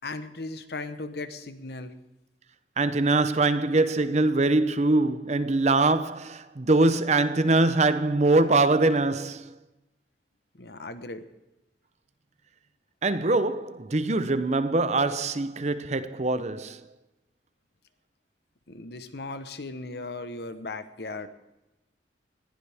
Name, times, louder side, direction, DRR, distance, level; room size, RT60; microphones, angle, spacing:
voice 1, 0.0-1.9 10.6-11.2 18.7-21.3, left 3 dB, 65° left, 1.2 m, -37 dB
voice 2, 2.8-9.6 13.0-16.8, right 2 dB, 40° right, 0.8 m, -23 dB
20.0 x 15.0 x 3.6 m
head